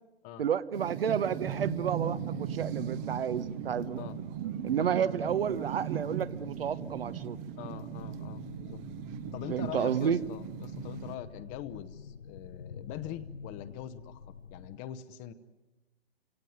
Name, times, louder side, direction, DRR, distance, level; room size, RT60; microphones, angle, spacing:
voice 1, 0.4-4.0 4.6-7.4 9.5-10.2, right 8 dB, 65° right, 14 dB, 1.2 m, -31 dB
sound 1, 0.7-11.2, right 10 dB, 25° right, 0.8 m, -38 dB
sound 2, 1.4-14.8, left 6 dB, 80° left, 1.0 m, -48 dB
voice 2, 7.6-8.8 9.3-15.3, left 11 dB, 25° left, 13 dB, 0.9 m, -43 dB
29.0 x 17.5 x 9.5 m, 1.1 s
figure-of-eight pair, 125°, 31 cm